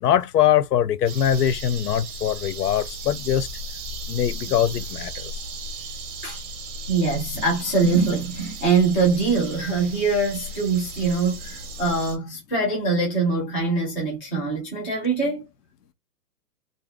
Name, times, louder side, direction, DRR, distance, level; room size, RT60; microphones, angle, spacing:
voice 1, 0.0-3.5 4.1-5.3, left 10 dB, 80° left, 0.6 m, -22 dB
sound 1, 1.1-12.2, right 1 dB, 30° right, 0.9 m, -36 dB
voice 2, 6.9-15.4, right 4 dB, 10° left, 0.4 m, -23 dB
2.6 x 2.2 x 3.4 m
hypercardioid pair, 135°, 47 cm